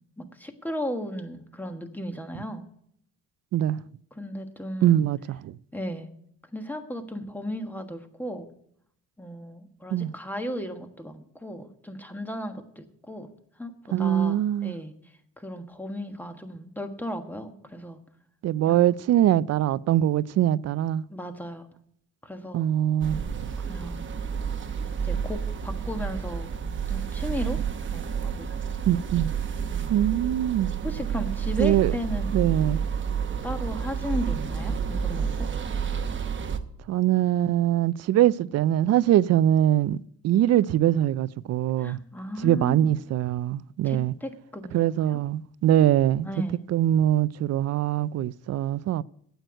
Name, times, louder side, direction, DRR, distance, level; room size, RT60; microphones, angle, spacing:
voice 1, 0.2-2.6 4.1-5.0 5.7-6.1 6.5-8.5 9.2-13.3 13.6-15.0 15.4-18.0 18.6-18.8 21.1-21.7 22.2-22.7 23.6-24.0 25.0-26.5 26.9-27.6 27.9-28.5 29.7-29.9 30.8-32.4 33.4-35.3 41.8-42.9 43.8-45.2 46.2-46.6, equal, 5° left, 1.4 m, -35 dB
voice 2, 4.8-5.5 9.9-10.1 13.9-14.7 18.4-21.0 22.5-23.5 28.9-29.3 29.9-30.7 31.6-31.9 32.3-32.8 36.9-40.0 40.2-42.0 42.4-44.1 44.7-46.3 46.7-49.0, right 12 dB, 55° right, 0.4 m, -23 dB
sound 1, 23.0-36.6, right 7 dB, 40° right, 0.9 m, -30 dB
9.0 x 8.0 x 7.8 m
cardioid pair, 90°, 30 cm